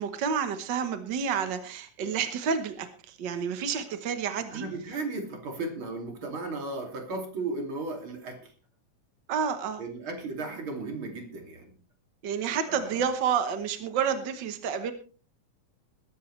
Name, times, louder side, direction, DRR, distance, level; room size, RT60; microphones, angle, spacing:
voice 1, 0.0-4.6 9.3-9.8 12.2-14.9, right 7 dB, 65° right, 9 dB, 1.1 m, -29 dB
voice 2, 4.5-8.5 9.8-11.7 12.7-13.0, right 3 dB, 40° right, 3 dB, 3.3 m, -35 dB
20.5 x 11.0 x 3.2 m, 0.38 s
omnidirectional pair, 3.6 m